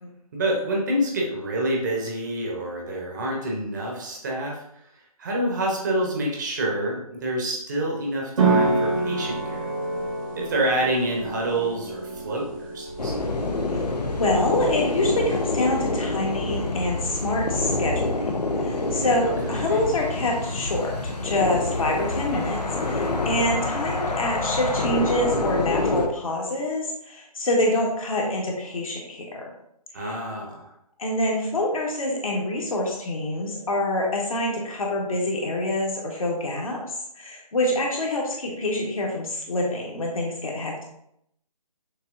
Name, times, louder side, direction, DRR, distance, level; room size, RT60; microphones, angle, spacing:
voice 1, 0.3-4.9 5.2-9.7 10.3-13.2 19.2-19.8 29.9-30.7, right 1 dB, 30° right, -1 dB, 0.9 m, -27 dB
sound 1, 8.4-15.7, right 3 dB, 55° right, 1.2 m, -28 dB
sound 2, 13.0-26.1, left 2 dB, 85° left, 0.7 m, -27 dB
voice 2, 14.1-18.3 18.6-29.5 30.0-30.2 31.0-36.8 37.1-40.8, left 1 dB, 60° left, -1 dB, 1.4 m, -26 dB
6.5 x 2.8 x 2.6 m, 0.74 s
figure-of-eight pair, 155°, 20 cm